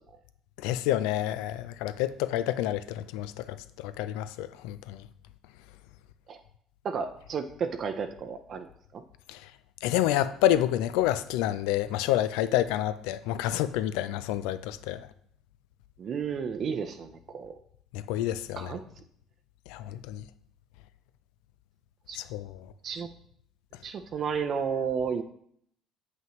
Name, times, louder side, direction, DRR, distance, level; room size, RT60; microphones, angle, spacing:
voice 1, 0.6-5.0 9.3-9.4 9.8-15.1 17.9-18.7 19.7-20.2 22.2-22.6, left 13 dB, 80° left, 0.4 m, -28 dB
voice 2, 6.8-9.0 16.0-17.6 18.6-18.9 22.1-22.2 22.8-23.1 23.8-25.2, right 6 dB, 50° right, 0.5 m, -32 dB
7.6 x 5.6 x 3.0 m
supercardioid pair, 75°, 0 cm